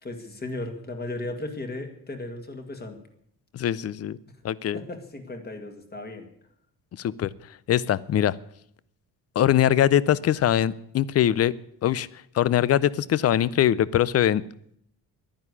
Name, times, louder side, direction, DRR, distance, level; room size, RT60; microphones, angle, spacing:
voice 1, 0.0-3.0 4.7-6.3, left 2 dB, 25° left, 5 dB, 1.9 m, -36 dB
voice 2, 3.5-4.2 4.4-4.8 7.0-7.3 7.7-8.3 9.4-11.5 11.8-12.1 12.3-14.4, left 11 dB, 40° left, 20 dB, 0.5 m, -22 dB
11.5 x 10.5 x 9.7 m, 0.71 s
cardioid pair, 170°, 37 cm